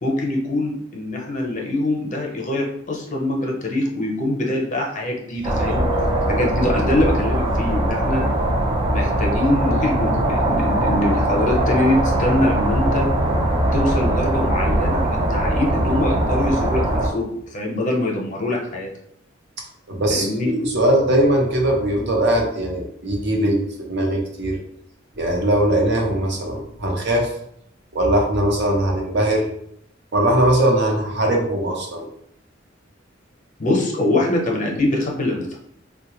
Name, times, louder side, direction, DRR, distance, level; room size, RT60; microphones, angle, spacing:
voice 1, 0.0-5.9 6.3-8.2 8.9-13.1 13.7-18.9 20.2-20.5 33.6-35.6, left 1 dB, 40° left, 0 dB, 0.7 m, -23 dB
sound 1, 5.4-17.1, right 1 dB, 25° right, 0.5 m, -21 dB
voice 2, 19.9-24.6 25.2-27.3 27.9-29.5 30.1-32.0, right 1 dB, 60° right, 0 dB, 0.8 m, -20 dB
3.6 x 2.2 x 2.9 m, 0.72 s
head